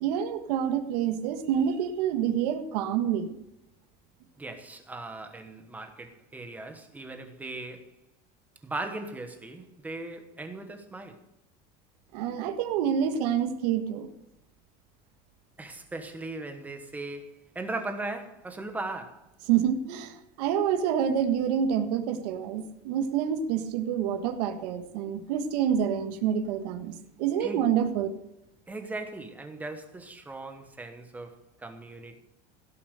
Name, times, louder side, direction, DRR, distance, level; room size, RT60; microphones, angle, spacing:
voice 1, 0.0-3.3 12.1-14.1 19.5-28.1, right 8 dB, 80° right, 1.6 m, -27 dB
voice 2, 4.4-7.9 8.6-11.2 15.6-19.3 27.4-27.6 28.7-32.2, right 2 dB, 10° right, 1.1 m, -38 dB
17.0 x 7.1 x 6.5 m
cardioid pair, 175°, 20 cm